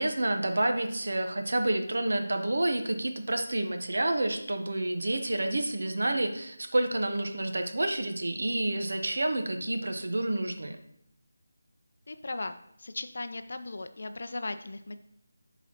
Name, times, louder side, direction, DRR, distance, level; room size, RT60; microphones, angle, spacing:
voice 1, 0.0-10.8, right 1 dB, 65° right, 6 dB, 0.8 m, -29 dB
voice 2, 12.1-15.0, left 2 dB, 55° left, 10 dB, 0.4 m, -37 dB
8.3 x 4.0 x 2.9 m, 0.71 s
figure-of-eight pair, 175°, 0 cm